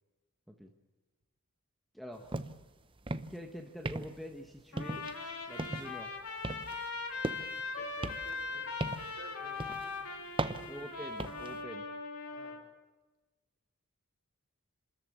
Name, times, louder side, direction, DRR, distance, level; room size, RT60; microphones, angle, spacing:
voice 1, 1.9-2.4 3.3-5.1 5.5-6.1 10.7-11.9, equal, ahead, 3 dB, 1.3 m, -46 dB
sound 1, 2.3-2.7 3.0-3.4 3.9-4.3 4.8-5.2 5.6-6.0 6.4-7.6 8.0-9.2 9.6-9.9 10.4-11.5, right 2 dB, 25° right, 0.7 m, -38 dB
Trumpet, 4.7-12.6, left 3 dB, 80° left, 3.5 m, -40 dB
voice 2, 7.8-10.1 10.5-10.7 12.3-12.6, right 1 dB, 45° right, 0 dB, 4.5 m, -54 dB
27.0 x 14.0 x 8.7 m, 1.2 s
head